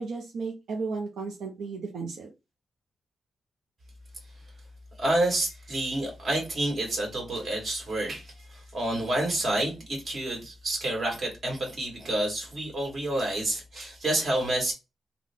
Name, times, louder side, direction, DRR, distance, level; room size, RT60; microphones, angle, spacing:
voice 1, 0.0-2.3, right 4 dB, 85° right, 0.7 m, -34 dB
voice 2, 5.0-14.7, right 1 dB, 50° right, 2.0 m, -29 dB
3.6 x 2.4 x 3.6 m
cardioid pair, 110°, 0 cm